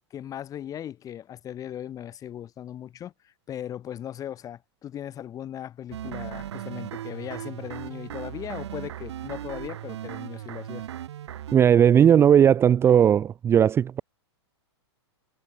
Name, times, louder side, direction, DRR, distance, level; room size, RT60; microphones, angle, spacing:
voice 1, 0.1-10.8, left 10 dB, 25° left, 3.2 m, -38 dB
sound 1, 5.9-11.6, right 11 dB, 75° right, 2.0 m, -37 dB
voice 2, 11.5-14.0, right 9 dB, 15° right, 0.6 m, -17 dB
hypercardioid pair, 135°, 15 cm